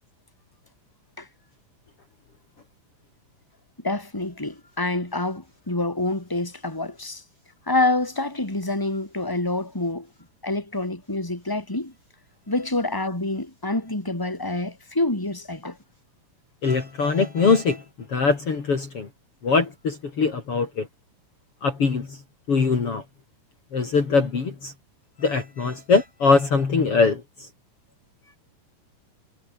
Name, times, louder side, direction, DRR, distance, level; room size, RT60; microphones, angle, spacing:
voice 1, 3.8-7.2 7.7-10.1 10.4-11.9 12.5-15.8, left 2 dB, 5° left, 4.6 m, -27 dB
voice 2, 16.6-17.8 18.1-19.1 19.4-20.9 21.6-22.2 22.5-23.0 23.7-24.7 25.2-27.2, left 4 dB, 45° left, 3.9 m, -22 dB
omnidirectional pair, 3.8 m